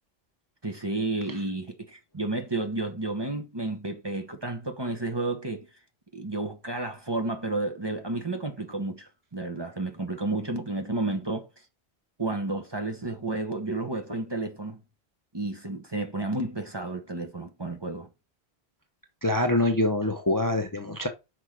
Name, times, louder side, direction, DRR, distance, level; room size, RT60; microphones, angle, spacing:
voice 1, 0.6-5.7 6.1-11.5 12.2-14.8 15.3-18.1, right 2 dB, 25° right, 1.1 m, -31 dB
voice 2, 19.2-21.1, left 2 dB, 20° left, 0.7 m, -25 dB
6.3 x 5.0 x 4.7 m
omnidirectional pair, 1.1 m